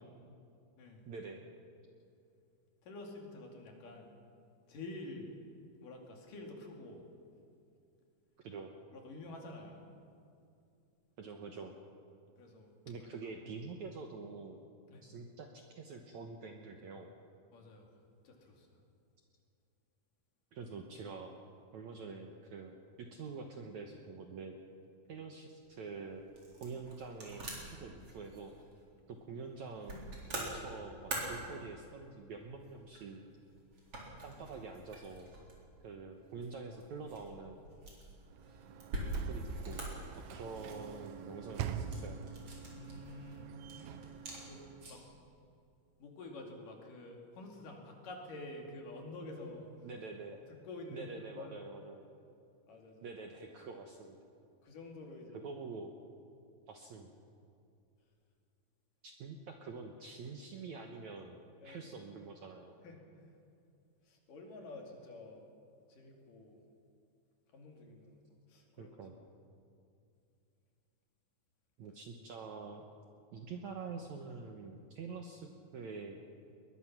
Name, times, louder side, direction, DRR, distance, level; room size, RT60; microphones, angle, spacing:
voice 1, 1.1-1.4 8.4-8.7 11.2-11.7 12.9-14.6 15.0-17.1 20.5-21.4 21.7-24.6 25.1-26.2 26.6-28.5 29.1-30.0 30.3-33.2 34.2-35.3 35.8-37.6 39.3-39.8 40.3-42.2 49.8-50.4 50.9-52.1 53.0-54.2 55.4-55.9 56.7-57.1 59.0-61.4 61.6-62.8 68.8-69.2 71.8-72.9 73.3-76.3, right 4 dB, 65° right, 3 dB, 1.9 m, -46 dB
voice 2, 2.8-4.1 4.7-5.3 5.8-7.0 8.9-9.8 12.4-12.7 14.9-15.1 17.5-17.9 18.2-18.8 42.6-43.5 44.4-45.0 46.0-49.7 50.5-51.6 52.7-53.1 53.7-53.8 54.6-55.5 61.6-61.9 62.8-63.3 64.0-65.4 65.9-66.6 67.5-68.2 68.5-69.0, left 2 dB, 60° left, 1 dB, 3.9 m, -49 dB
sound 1, 25.6-45.2, right 2 dB, 35° right, 4.7 m, -46 dB
Sliding door / Slam, 38.2-45.2, right 7 dB, 85° right, 1.7 m, -45 dB
21.5 x 21.0 x 6.0 m, 2.5 s
omnidirectional pair, 4.5 m